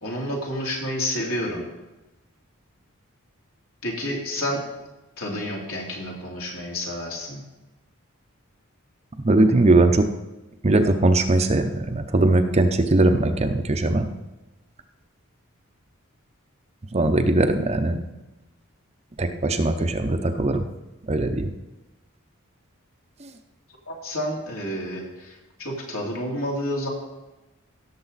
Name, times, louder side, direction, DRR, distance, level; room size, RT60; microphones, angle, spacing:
voice 1, 0.0-1.7 3.8-4.6 5.2-7.4 23.9-26.9, equal, 75° left, -2 dB, 3.0 m, -29 dB
voice 2, 9.2-10.1 10.6-14.1 16.9-18.0 19.2-20.7 21.1-21.5 23.2-23.3, right 2 dB, 30° right, 7 dB, 0.7 m, -20 dB
17.0 x 6.9 x 4.1 m, 1.0 s
head